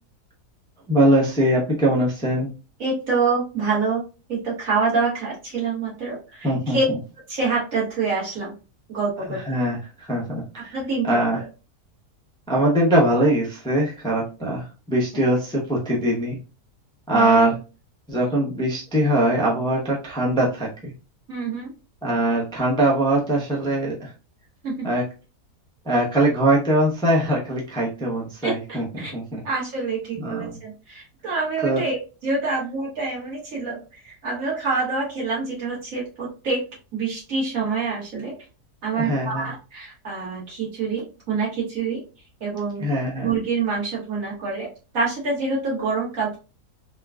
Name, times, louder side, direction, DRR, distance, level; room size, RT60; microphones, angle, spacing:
voice 1, 0.9-2.5 6.4-6.8 9.3-10.8 11.0-11.4 12.5-16.4 17.1-17.6 18.1-20.9 22.0-24.1 24.8-25.0 25.8-29.4 30.2-30.6 31.6-31.8 38.9-39.5 42.8-43.3, right 1 dB, 5° left, -4 dB, 0.3 m, -22 dB
voice 2, 2.8-4.0 4.3-6.8 7.3-8.5 8.9-9.4 10.7-11.4 15.1-15.2 17.1-17.5 21.3-21.7 24.6-24.8 28.4-29.1 29.4-38.3 38.8-42.0 42.4-42.8 43.2-46.4, right 4 dB, 60° right, -5 dB, 1.8 m, -26 dB
3.7 x 2.3 x 2.3 m, 0.33 s
omnidirectional pair, 1.6 m